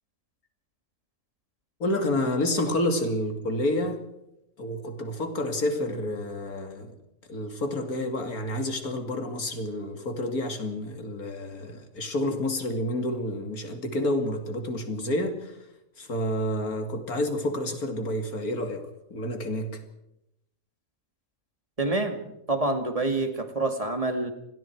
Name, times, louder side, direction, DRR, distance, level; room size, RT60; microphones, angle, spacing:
voice 1, 1.8-4.0 4.6-6.9 7.3-15.6 16.0-19.8, left 1 dB, 90° left, 6 dB, 3.1 m, -29 dB
voice 2, 21.8-24.3, right 2 dB, 25° right, 6 dB, 2.4 m, -27 dB
27.5 x 20.5 x 4.7 m, 0.85 s
omnidirectional pair, 1.5 m